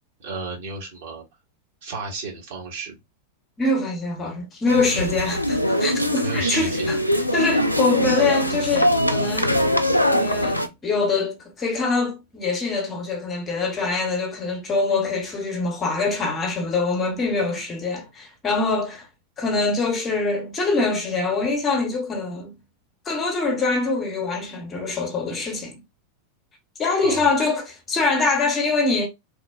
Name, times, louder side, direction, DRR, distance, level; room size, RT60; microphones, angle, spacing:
voice 1, 0.2-1.2 1.8-2.9 6.2-6.9 27.0-27.3, right 3 dB, 55° right, 1.2 m, -32 dB
voice 2, 3.6-7.0 7.3-9.6 10.1-19.1 19.4-22.5 23.0-25.8 26.8-29.1, left 3 dB, 25° left, 0.8 m, -24 dB
sound 1, 4.7-10.7, equal, 90° left, 0.3 m, -22 dB
3.0 x 2.0 x 2.3 m
figure-of-eight pair, 90°, 0 cm